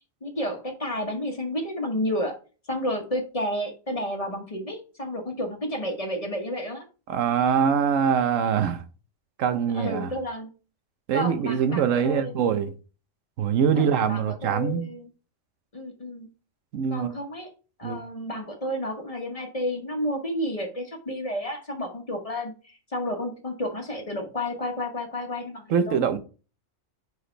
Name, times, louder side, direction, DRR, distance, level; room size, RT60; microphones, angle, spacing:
voice 1, 0.2-2.4 2.7-6.8 9.7-10.5 11.1-12.4 13.8-15.1 15.7-16.3 16.9-17.5 17.8-26.0, left 1 dB, 30° left, 1.1 m, -31 dB
voice 2, 7.1-8.8 9.4-10.1 11.1-12.7 13.4-14.8 16.7-17.1 17.8-18.0 25.7-26.2, right 7 dB, 85° right, 1.1 m, -23 dB
4.9 x 4.8 x 4.4 m
omnidirectional pair, 1.3 m